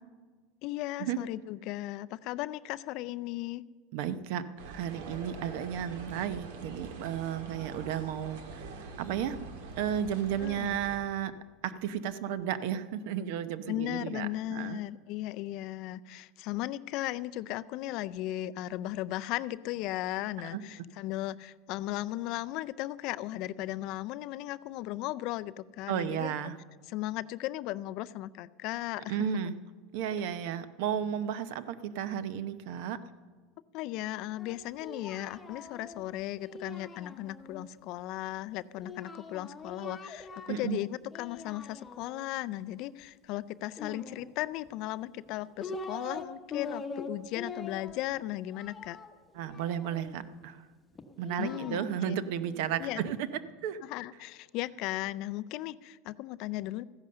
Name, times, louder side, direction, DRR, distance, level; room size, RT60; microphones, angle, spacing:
voice 1, 0.6-3.6 10.4-10.8 13.7-26.3 26.9-29.3 33.7-49.0 51.4-52.2 52.8-53.0 53.8-56.8, left 15 dB, 50° left, 15 dB, 0.4 m, -36 dB
voice 2, 3.9-8.6 9.0-9.4 9.8-11.3 11.6-14.8 20.5-20.6 25.9-26.5 29.1-29.5 29.9-33.0 40.5-40.8 49.3-50.6 51.2-53.3 53.6-53.8, right 9 dB, 65° right, 13 dB, 0.7 m, -33 dB
sound 1, 4.6-11.0, right 3 dB, 85° right, 1.8 m, -44 dB
Singing, 34.4-37.6 38.8-40.8 41.1-42.3 43.7-44.7 45.3-46.2 46.5-50.2 50.9-53.2, left 3 dB, 15° left, 0.9 m, -44 dB
14.5 x 10.5 x 6.7 m, 1.5 s
supercardioid pair, 155°, 0 cm